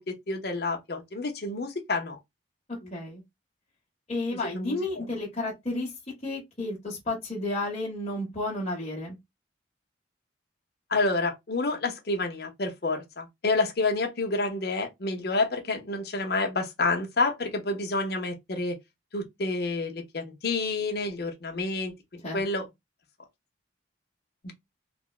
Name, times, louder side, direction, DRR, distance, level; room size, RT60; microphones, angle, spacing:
voice 1, 0.1-2.2 2.8-2.9 4.5-5.0 10.9-18.8 19.1-22.7 24.4-24.5, left 3 dB, 55° left, 0.7 m, -29 dB
voice 2, 2.9-3.2 4.1-5.9 6.2-9.2 22.2-22.4, left 2 dB, 35° left, 1.0 m, -32 dB
3.4 x 2.1 x 2.4 m
head